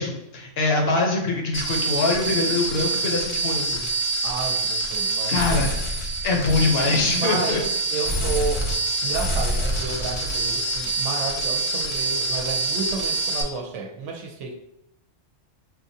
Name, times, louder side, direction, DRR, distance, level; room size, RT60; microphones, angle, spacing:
voice 1, 0.0-3.8 5.3-5.7 6.2-7.6, left 3 dB, 60° left, 1 dB, 0.9 m, -23 dB
sound 1, 1.5-13.4, right 2 dB, 45° left, 0.4 m, -26 dB
voice 2, 4.2-5.7 7.1-7.6 7.9-14.5, right 4 dB, 80° right, 1 dB, 0.9 m, -31 dB
4.4 x 2.4 x 2.6 m, 0.83 s
omnidirectional pair, 1.2 m